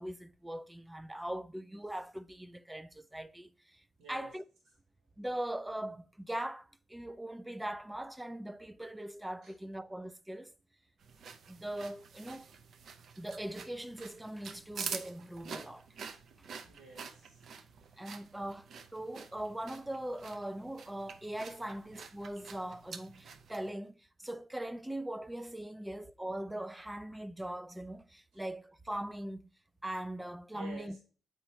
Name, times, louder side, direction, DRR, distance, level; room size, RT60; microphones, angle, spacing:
voice 1, 0.0-3.8 4.1-4.4 5.2-10.5 11.5-12.5 13.2-15.9 16.4-16.5 18.0-29.5 29.8-31.0, right 1 dB, 10° right, 0.3 m, -41 dB
voice 2, 4.0-4.3 9.4-9.5 16.7-17.4 28.3-28.4 30.5-31.0, right 3 dB, 85° right, 1.8 m, -51 dB
sound 1, 11.0-23.7, right 5 dB, 60° right, 0.6 m, -47 dB
7.9 x 2.9 x 4.4 m
cardioid pair, 90°, 0 cm